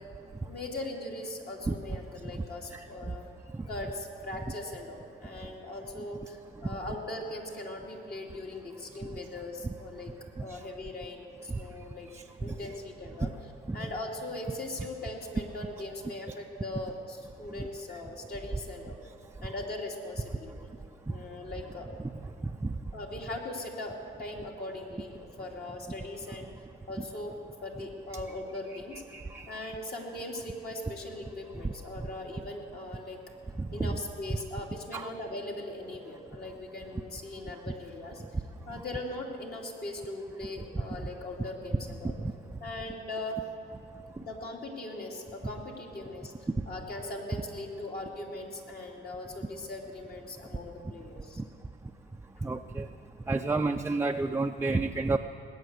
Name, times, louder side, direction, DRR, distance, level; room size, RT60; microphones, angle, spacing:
voice 1, 0.5-3.3 3.7-10.1 10.4-12.1 12.4-13.3 13.7-19.0 19.4-20.5 21.1-21.9 22.9-26.5 26.9-27.4 27.6-29.0 29.5-33.2 33.7-38.2 38.7-42.2 42.6-43.4 44.2-46.3 46.7-51.4 53.3-53.4, left 2 dB, 50° left, -1 dB, 2.7 m, -40 dB
voice 2, 12.1-12.5 13.2-13.3 13.7-13.9 17.6-17.7 22.6-22.7 28.9-29.7 31.6-31.7 33.6-34.0 34.9-35.1 42.2-42.3 52.4-52.9 53.3-55.2, right 3 dB, 15° right, 4 dB, 0.5 m, -31 dB
19.5 x 8.9 x 8.0 m, 2.6 s
cardioid pair, 90°, 20 cm